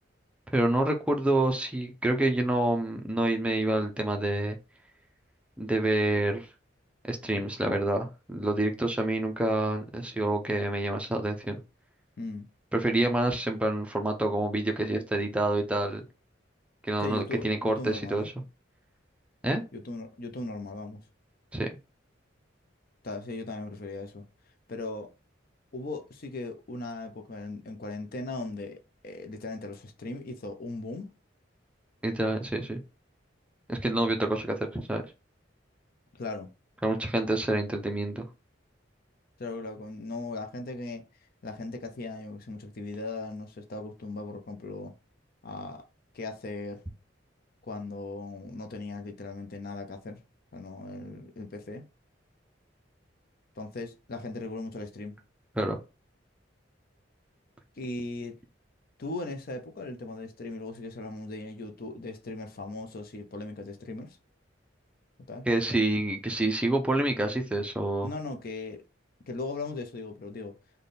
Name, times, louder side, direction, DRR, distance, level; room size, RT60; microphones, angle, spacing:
voice 1, 0.5-4.6 5.6-6.5 7.1-11.6 12.7-16.0 16.8-18.3 19.4-19.6 21.5-21.8 32.0-32.8 33.7-35.0 36.8-38.2 55.6-55.8 65.5-68.1, right 1 dB, 5° right, 0.4 m, -27 dB
voice 2, 12.2-12.5 17.0-18.3 19.7-21.0 23.0-24.3 24.7-25.1 25.7-31.1 36.1-36.5 39.4-41.0 41.4-44.9 45.4-45.8 46.1-46.8 47.6-50.2 50.5-51.8 53.6-55.1 57.8-58.4 59.0-64.2 65.3-65.5 68.0-68.8 69.3-70.5, left 2 dB, 50° left, 0.5 m, -38 dB
3.4 x 2.2 x 4.0 m
head